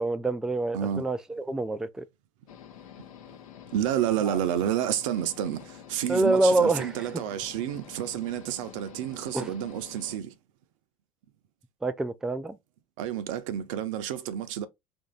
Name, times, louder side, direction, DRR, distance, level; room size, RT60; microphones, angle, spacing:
voice 1, 0.0-2.0 4.2-4.4 6.1-6.9 9.3-9.5 11.8-12.6, right 2 dB, 5° right, 0.3 m, -26 dB
sound 1, 2.5-10.2, left 9 dB, 80° left, 0.7 m, -48 dB
voice 2, 3.7-10.3 13.0-14.7, right 10 dB, 65° right, 0.6 m, -30 dB
3.1 x 2.7 x 3.7 m
hypercardioid pair, 70°, 18 cm